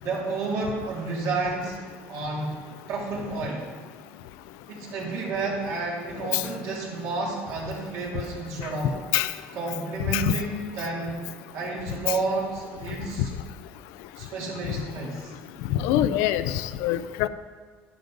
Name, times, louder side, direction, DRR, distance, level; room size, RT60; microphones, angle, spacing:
voice 1, 0.0-1.8 2.1-2.6 2.9-3.7 4.7-8.9 9.5-11.2 11.5-13.3 14.2-15.3, right 3 dB, 70° right, -3 dB, 3.0 m, -30 dB
voice 2, 15.7-17.3, left 12 dB, 85° left, 13 dB, 0.5 m, -24 dB
10.5 x 10.5 x 3.9 m, 1.5 s
cardioid pair, 130°, 5 cm